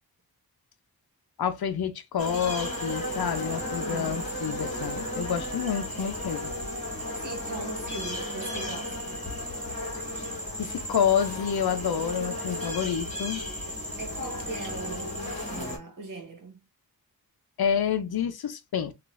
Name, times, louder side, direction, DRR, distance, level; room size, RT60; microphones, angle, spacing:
voice 1, 1.4-6.5 10.6-13.4 17.6-18.9, left 8 dB, 75° left, 0.6 m, -28 dB
sound 1, 2.2-15.8, left 1 dB, 20° left, 1.8 m, -34 dB
voice 2, 3.8-4.2 7.2-9.2 14.0-16.6, right 3 dB, 55° right, 1.2 m, -40 dB
3.8 x 2.5 x 2.4 m
wide cardioid pair, 80°, 38 cm